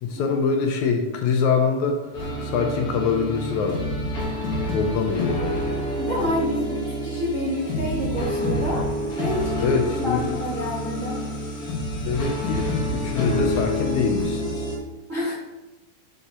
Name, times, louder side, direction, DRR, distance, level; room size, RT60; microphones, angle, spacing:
voice 1, 0.0-2.1 2.4-3.9 4.7-5.8 9.6-10.4 12.0-14.7, left 5 dB, 75° left, 4 dB, 1.9 m, -24 dB
sound 1, 2.1-14.8, left 1 dB, 55° left, 1.0 m, -27 dB
voice 2, 6.0-8.9 9.1-11.2 15.1-15.4, left 1 dB, 50° right, -7 dB, 0.9 m, -28 dB
6.8 x 4.9 x 4.2 m, 1.0 s
omnidirectional pair, 3.7 m